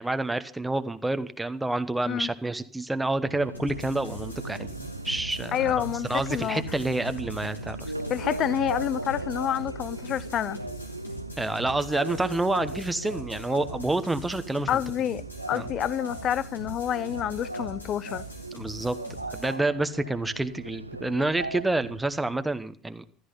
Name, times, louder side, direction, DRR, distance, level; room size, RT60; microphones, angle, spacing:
voice 1, 0.0-5.8 6.1-7.8 11.4-14.7 15.5-15.7 18.5-19.0 19.3-23.1, right 2 dB, 10° right, 1.0 m, -28 dB
Subway metro underground, 3.2-22.5, right 1 dB, 85° right, 0.6 m, -38 dB
sound 1, 3.5-19.5, right 1 dB, 80° left, 3.5 m, -44 dB
voice 2, 5.5-6.6 8.1-10.6 14.7-18.2, left 10 dB, 40° left, 0.6 m, -28 dB
14.5 x 13.0 x 5.6 m
figure-of-eight pair, 65°, 0 cm